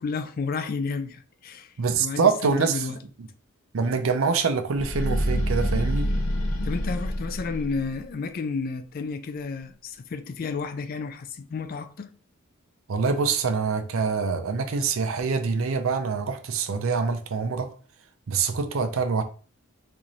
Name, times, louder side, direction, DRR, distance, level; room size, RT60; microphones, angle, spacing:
voice 1, 0.0-1.7 2.0-3.0 6.6-12.1, left 4 dB, 45° left, 0.3 m, -31 dB
voice 2, 1.8-2.9 3.2-3.3 3.7-6.1 12.9-17.7 18.3-19.2, right 5 dB, 65° right, 0.5 m, -25 dB
sound 1, 4.7-8.0, equal, 85° left, 0.8 m, -27 dB
4.1 x 2.6 x 3.0 m
head